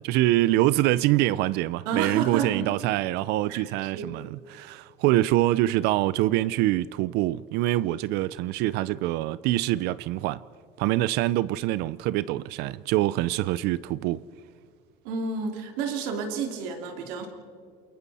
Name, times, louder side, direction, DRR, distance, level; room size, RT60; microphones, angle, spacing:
voice 1, 0.0-10.4 10.8-14.2, right 16 dB, 70° right, 0.5 m, -25 dB
voice 2, 1.8-2.7 3.5-3.6 3.9-4.1 15.0-17.3, right 5 dB, 90° right, 2.9 m, -30 dB
28.5 x 23.0 x 4.2 m
cardioid pair, 135°, 17 cm